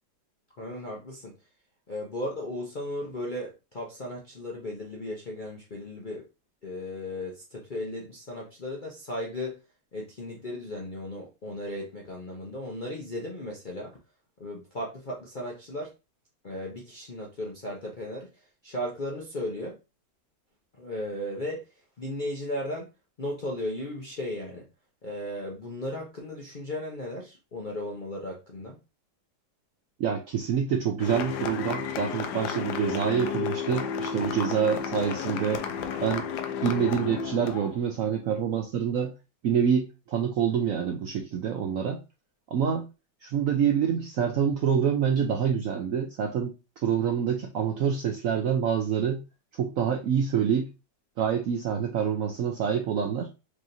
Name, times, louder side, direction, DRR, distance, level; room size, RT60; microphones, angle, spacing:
voice 1, 0.6-1.3 1.9-6.3 6.6-9.6 9.9-14.0 14.4-15.9 16.4-18.3 18.6-19.8 20.8-21.6 22.0-22.9 23.2-24.7 25.0-28.8, left 1 dB, 50° left, 0.5 m, -35 dB
voice 2, 30.0-35.7 36.0-36.3 36.6-39.1 39.4-42.0 42.5-42.9 43.2-46.5 46.8-49.2 49.5-50.7 51.2-53.3, right 7 dB, 75° right, 0.8 m, -26 dB
sound 1, 31.0-37.8, left 7 dB, 75° left, 1.1 m, -32 dB
4.7 x 2.9 x 2.6 m
omnidirectional pair, 1.9 m